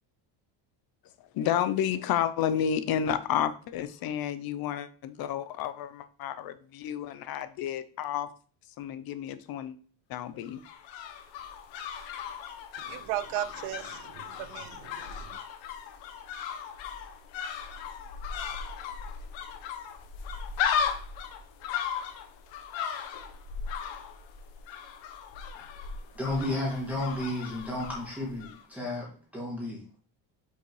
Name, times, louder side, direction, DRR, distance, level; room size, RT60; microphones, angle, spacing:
voice 1, 1.3-8.3 8.8-9.7 10.1-10.6, left 9 dB, 50° left, 0.7 m, -31 dB
sound 1, 10.4-28.6 28.9-29.0, left 7 dB, 65° left, 1.1 m, -37 dB
voice 2, 12.8-15.4, right 14 dB, 80° right, 0.8 m, -36 dB
voice 3, 26.1-29.1 29.3-29.8, left 1 dB, 5° right, 2.2 m, -32 dB
5.6 x 4.3 x 4.7 m
cardioid pair, 155°, 48 cm